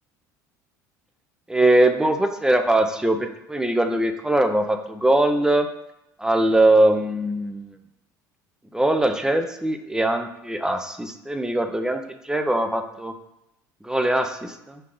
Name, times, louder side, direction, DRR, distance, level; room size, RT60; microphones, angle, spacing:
voice 1, 1.5-5.7 6.2-7.8 8.7-13.1 13.8-14.8, right 1 dB, 5° right, 6 dB, 0.5 m, -21 dB
3.4 x 3.2 x 3.9 m, 0.84 s
hypercardioid pair, 75°, 10 cm